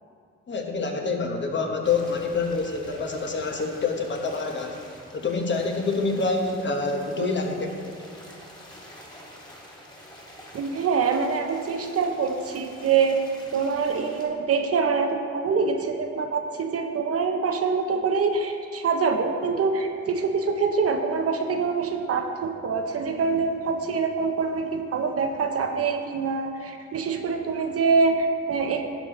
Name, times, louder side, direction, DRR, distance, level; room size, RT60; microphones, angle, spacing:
voice 1, 0.5-4.8 5.1-7.7, left 4 dB, 40° left, 2 dB, 1.2 m, -26 dB
sound 1, 1.8-14.2, equal, 15° left, 2.4 m, -47 dB
voice 2, 10.5-13.2 13.5-28.8, right 5 dB, 50° right, 4 dB, 0.8 m, -25 dB
11.0 x 6.9 x 3.8 m, 2.3 s
cardioid pair, 90°, 30 cm